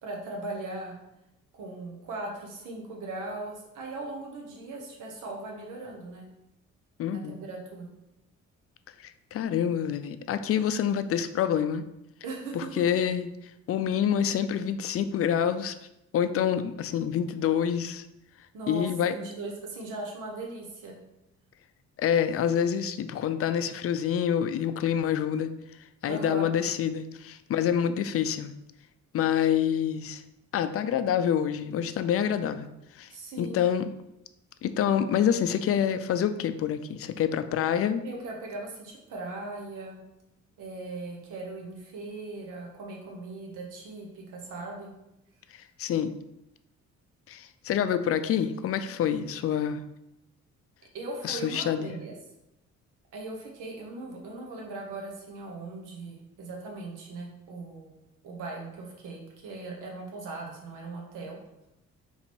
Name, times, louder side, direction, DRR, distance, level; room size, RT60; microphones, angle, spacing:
voice 1, 0.0-0.9 1.5-6.3 7.1-7.9 12.2-12.8 18.5-21.0 26.1-26.5 33.1-33.6 38.0-40.0 40.6-44.9 50.9-52.2 53.1-57.9 58.2-61.4, right 2 dB, 85° right, 0 dB, 1.1 m, -39 dB
voice 2, 7.0-7.3 9.3-11.8 12.5-13.3 13.7-15.7 16.1-18.1 18.7-19.1 22.0-25.5 26.0-28.5 29.1-30.2 30.5-32.7 33.0-33.1 33.4-33.9 34.6-38.0 45.8-46.1 47.3-49.8 51.2-52.0, left 9 dB, 50° left, 11 dB, 0.4 m, -27 dB
3.9 x 2.9 x 4.3 m, 0.88 s
cardioid pair, 90°, 30 cm